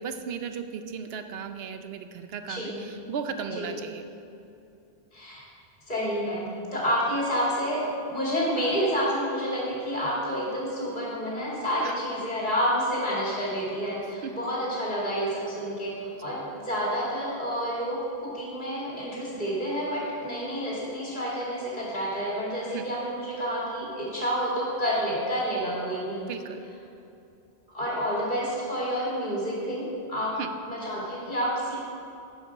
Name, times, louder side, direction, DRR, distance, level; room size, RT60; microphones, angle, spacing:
voice 1, 0.0-4.0 11.8-12.0 14.0-14.3 22.7-22.8 26.3-26.6 30.4-30.5, right 6 dB, 70° right, 8 dB, 0.9 m, -36 dB
voice 2, 2.5-2.8 3.6-3.7 5.1-5.4 5.9-26.3 27.7-30.4 30.7-31.8, equal, 45° left, -6 dB, 2.8 m, -29 dB
9.8 x 5.5 x 6.1 m, 2.7 s
omnidirectional pair, 1.1 m